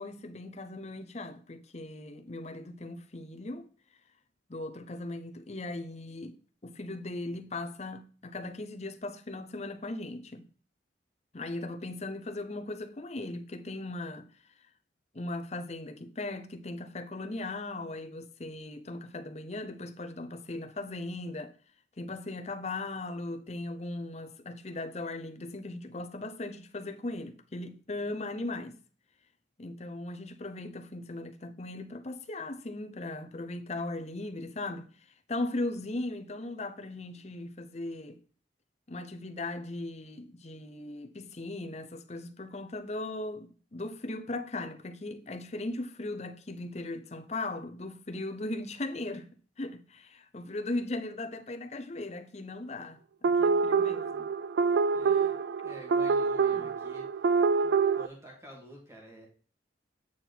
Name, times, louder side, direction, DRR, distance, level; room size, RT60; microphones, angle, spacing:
voice 1, 0.0-3.7 4.5-6.4 6.6-10.5 11.3-14.3 15.1-21.5 22.0-28.8 29.6-34.9 35.3-38.2 38.9-49.3 49.6-54.3 56.5-56.7 57.6-57.8, left 2 dB, 35° left, 0.7 m, -38 dB
sound 1, 53.2-58.1, right 5 dB, 65° right, 0.4 m, -26 dB
voice 2, 54.9-55.3 55.6-57.4 57.9-59.3, right 1 dB, 15° right, 2.0 m, -50 dB
8.6 x 4.5 x 4.0 m
head